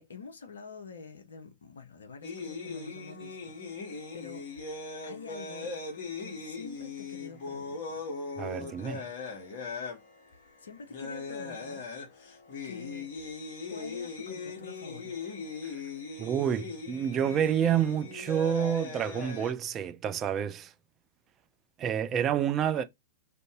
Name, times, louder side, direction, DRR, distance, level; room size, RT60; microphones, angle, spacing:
voice 1, 0.0-4.5 5.0-5.7 6.2-8.1 10.6-11.8 12.6-13.1 13.7-15.4 22.6-22.8, left 5 dB, 65° left, 0.5 m, -47 dB
sound 1, 2.2-19.5, left 4 dB, 50° left, 1.0 m, -39 dB
voice 2, 8.4-9.1 16.2-20.7 21.8-22.8, right 9 dB, 25° right, 0.4 m, -28 dB
2.6 x 2.6 x 3.6 m
figure-of-eight pair, 100°, 0 cm